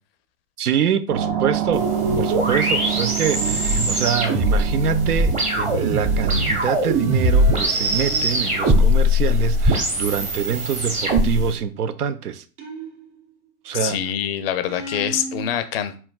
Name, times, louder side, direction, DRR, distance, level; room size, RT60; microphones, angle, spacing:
voice 1, 0.6-1.9 2.2-12.4 13.6-14.0, right 8 dB, 80° right, 0.5 m, -25 dB
sound 1, 1.1-9.9, right 6 dB, 35° right, 0.5 m, -27 dB
sound 2, 1.7-11.5, equal, 15° right, 0.9 m, -21 dB
sound 3, 11.3-11.8 12.6-13.5 14.7-15.5, right 2 dB, 50° right, 1.3 m, -35 dB
voice 2, 13.8-16.0, left 9 dB, 45° left, 0.4 m, -25 dB
4.3 x 3.8 x 2.3 m
figure-of-eight pair, 95°, 45 cm